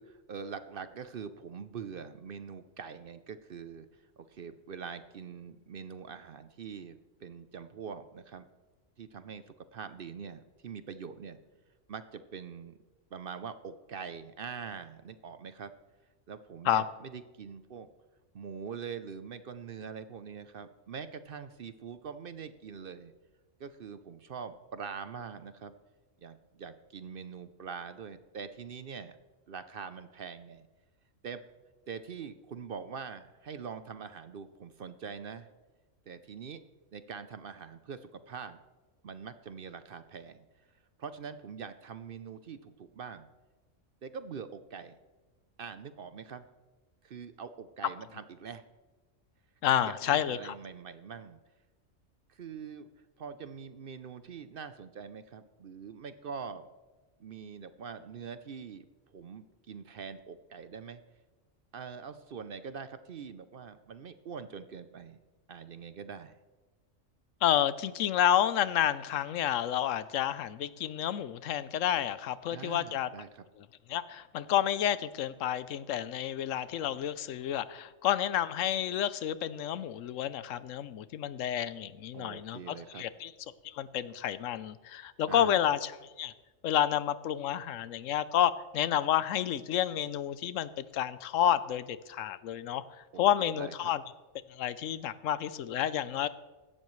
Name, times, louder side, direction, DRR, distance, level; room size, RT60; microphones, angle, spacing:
voice 1, 0.0-3.9 4.2-8.5 9.0-11.4 11.9-12.8 13.1-15.7 16.3-17.9 18.3-23.1 23.6-25.8 26.2-29.2 29.5-30.7 31.2-31.4 31.9-35.5 36.1-36.6 36.9-38.6 39.0-40.4 41.0-43.3 44.0-45.0 45.6-46.5 47.0-48.6 49.7-51.4 52.3-52.9 53.2-56.7 57.2-58.8 59.1-61.0 61.7-65.2 65.5-66.4 72.5-73.4 82.1-83.0 85.3-85.6 93.1-93.9, right 6 dB, 55° right, 12 dB, 0.7 m, -43 dB
voice 2, 49.6-50.5 67.4-73.1 73.9-83.3 83.6-85.9 86.2-86.3 86.6-92.8 93.2-94.0 94.5-96.3, left 10 dB, 80° left, 15 dB, 1.0 m, -30 dB
16.0 x 12.0 x 3.2 m, 1.3 s
omnidirectional pair, 1.3 m